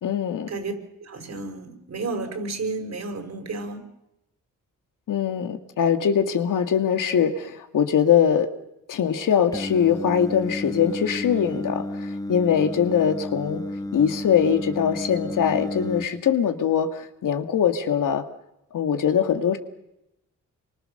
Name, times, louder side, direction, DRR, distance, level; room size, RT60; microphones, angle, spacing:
voice 1, 0.0-0.5 5.1-8.5 8.9-13.6 13.9-18.2 18.7-19.6, left 8 dB, 85° left, 7 dB, 2.1 m, -22 dB
voice 2, 1.0-3.8, right 3 dB, 60° right, 5 dB, 5.2 m, -32 dB
Singing, 9.5-16.0, left 1 dB, 10° left, 1.5 m, -32 dB
28.0 x 24.5 x 6.7 m, 0.87 s
wide cardioid pair, 115°, 31 cm